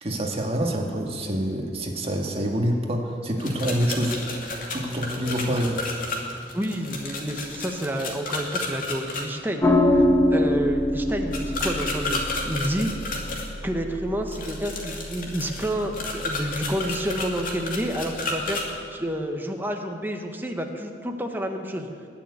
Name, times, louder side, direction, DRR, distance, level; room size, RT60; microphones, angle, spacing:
voice 1, 0.0-4.3 4.7-5.8, equal, 35° right, 1 dB, 1.9 m, -26 dB
sound 1, 3.4-9.2 11.3-13.5 14.3-18.6, left 3 dB, 50° left, 2.7 m, -32 dB
voice 2, 6.5-10.0 10.3-12.9 13.6-18.6 18.9-21.9, equal, 10° right, 3 dB, 1.4 m, -29 dB
sound 2, 9.6-18.2, left 1 dB, 15° left, 1.6 m, -26 dB
21.0 x 7.0 x 9.6 m, 2.4 s
head